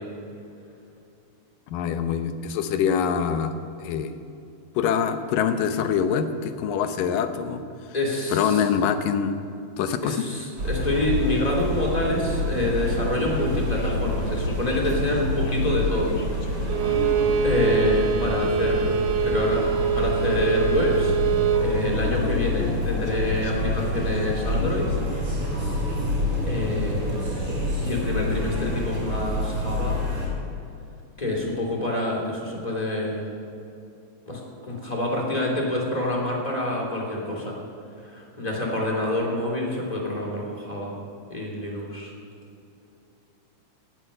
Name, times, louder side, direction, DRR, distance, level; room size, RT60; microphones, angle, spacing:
voice 1, 1.7-3.5 3.8-4.1 4.8-7.6 8.3-9.4 9.8-10.2, left 7 dB, 75° left, 8 dB, 2.5 m, -24 dB
voice 2, 7.9-8.6 10.0-16.2 16.5-17.0 17.4-19.0 19.2-21.2 21.6-25.0 26.5-27.4 27.8-30.0 31.2-33.3 34.3-37.5 38.0-40.9 41.3-42.1, left 1 dB, 10° left, -2 dB, 2.8 m, -27 dB
sound 1, 10.6-30.3, left 1 dB, 30° right, 5.7 m, -27 dB
sound 2, 12.7-26.0, left 2 dB, 45° left, 1.6 m, -45 dB
Bowed string instrument, 16.7-21.7, right 8 dB, 85° right, 1.4 m, -24 dB
18.5 x 11.0 x 6.7 m, 2.7 s
omnidirectional pair, 4.2 m